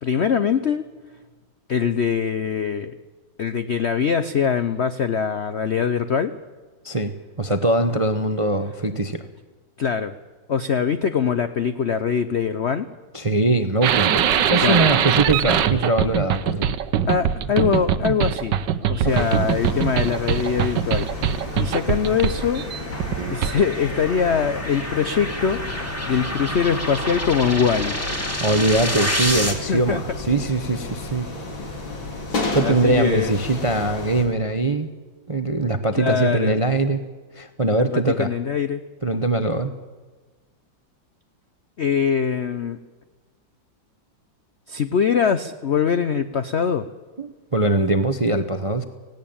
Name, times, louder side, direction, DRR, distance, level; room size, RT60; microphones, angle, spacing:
voice 1, 0.0-0.9 1.7-2.9 3.4-6.3 9.8-10.1 10.5-12.9 14.6-14.9 17.1-18.5 18.9-22.6 23.3-28.3 29.7-30.0 32.6-33.3 35.9-36.6 37.9-38.8 41.8-42.8 44.7-46.9, left 7 dB, 65° left, 11 dB, 0.7 m, -23 dB
voice 2, 6.8-9.2 13.1-16.7 19.0-19.3 28.4-31.3 32.5-34.9 35.3-37.1 37.3-38.3 39.0-39.8 47.2-48.8, right 2 dB, 30° right, 9 dB, 0.6 m, -22 dB
sound 1, 13.8-23.7, right 9 dB, 70° right, 1.5 m, -22 dB
sound 2, 19.1-34.3, left 3 dB, 85° left, 3.8 m, -32 dB
sound 3, 20.7-29.5, equal, 5° left, 2.5 m, -30 dB
18.0 x 17.0 x 8.7 m, 1.3 s
omnidirectional pair, 2.1 m